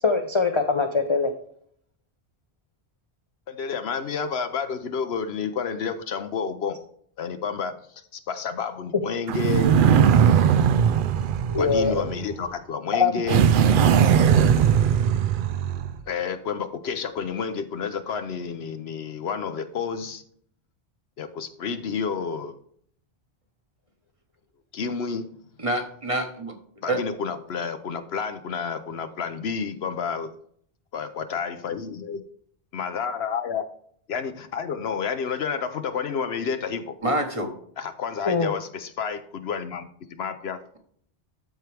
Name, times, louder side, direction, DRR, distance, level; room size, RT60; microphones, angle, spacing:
voice 1, 0.0-1.3 11.5-12.1 12.9-13.1 38.3-38.5, left 4 dB, 30° left, 4 dB, 0.6 m, -22 dB
voice 2, 3.5-6.8 7.2-9.8 11.6-13.5 16.1-20.2 21.2-22.6 24.7-25.3 26.8-30.3 30.9-32.2 32.7-33.7 34.1-37.0 37.8-40.6, left 6 dB, 65° left, 10 dB, 0.9 m, -30 dB
sound 1, 9.3-12.4 13.3-16.0, right 8 dB, 60° right, 0.6 m, -19 dB
voice 3, 25.6-26.5 26.8-27.0 37.0-37.5, right 1 dB, 30° right, 4 dB, 1.2 m, -26 dB
13.0 x 4.5 x 3.3 m, 0.63 s
omnidirectional pair, 1.2 m